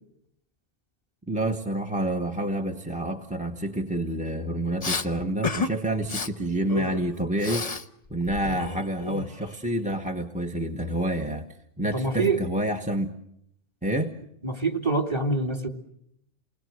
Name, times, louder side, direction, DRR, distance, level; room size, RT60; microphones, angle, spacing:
voice 1, 1.3-7.7 8.1-11.5 11.8-13.2 13.8-14.2, right 1 dB, 5° right, 7 dB, 1.2 m, -28 dB
Respiratory sounds, 4.8-5.1 5.4-5.7 6.0-6.3 6.7-7.9 8.1-9.6, left 4 dB, 35° left, 1.1 m, -31 dB
voice 2, 11.9-12.4 14.4-15.7, right 3 dB, 25° right, 5 dB, 2.6 m, -25 dB
29.0 x 21.0 x 7.8 m, 0.76 s
omnidirectional pair, 1.2 m